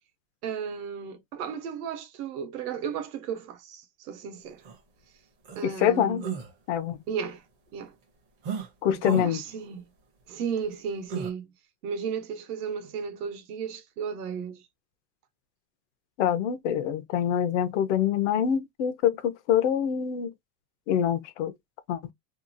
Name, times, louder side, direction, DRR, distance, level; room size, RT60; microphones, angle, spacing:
voice 1, 0.4-4.6 5.5-6.3 7.1-7.4 7.7-7.9 8.9-9.8 10.3-11.5 11.8-14.6, right 7 dB, 65° right, 1.0 m, -34 dB
sound 1, 4.7-4.8 5.4-5.6 6.2-6.5 8.4-8.7 9.0-9.3 11.1-11.3, right 6 dB, 25° right, 0.6 m, -33 dB
voice 2, 5.6-6.2 6.7-7.0 8.8-9.4 16.2-20.3 20.9-21.5 21.9-22.0, left 9 dB, 45° left, 0.5 m, -25 dB
2.8 x 2.2 x 2.5 m
supercardioid pair, 170°, 50 cm